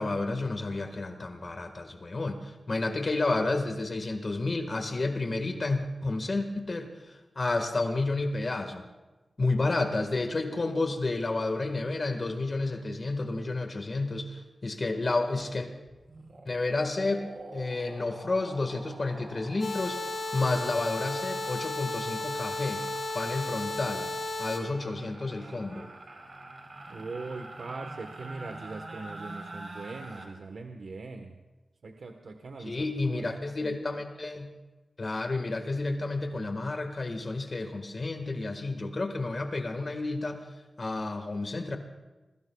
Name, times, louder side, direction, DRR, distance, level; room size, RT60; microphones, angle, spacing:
voice 1, 0.0-8.8 9.4-15.7 16.4-22.8 23.1-24.1 24.4-25.9 32.6-34.5 35.0-40.4 40.8-41.8, left 2 dB, 45° left, 5 dB, 1.6 m, -31 dB
sound 1, 15.4-15.6 15.9-30.3, right 2 dB, 50° right, 3.6 m, -46 dB
sound 2, 19.6-24.6, left 2 dB, 75° left, 6.7 m, -34 dB
voice 2, 26.9-31.3 31.8-33.3, right 3 dB, 70° right, 4 dB, 1.2 m, -41 dB
28.5 x 22.0 x 2.3 m, 1.2 s
wide cardioid pair, 110°, 0 cm